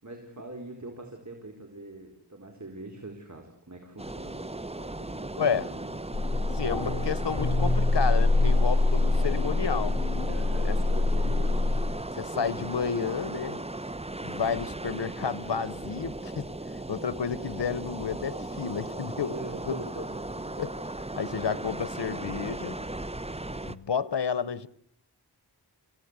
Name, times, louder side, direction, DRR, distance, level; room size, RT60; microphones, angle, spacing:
voice 1, 0.0-5.9 10.3-11.6 19.3-20.6, right 2 dB, 45° right, 4.5 m, -43 dB
sound 1, 4.0-23.7, right 2 dB, 15° right, 1.0 m, -37 dB
voice 2, 5.4-5.7 6.5-10.0 10.6-10.8 12.2-13.6 14.2-16.5 16.9-19.4 19.7-19.8 20.6-20.7 21.1-22.8 23.7-24.7, left 6 dB, 85° left, 1.1 m, -31 dB
sound 2, 6.1-11.9, left 2 dB, 70° left, 4.4 m, -25 dB
28.0 x 16.5 x 8.2 m
wide cardioid pair, 40°, 40 cm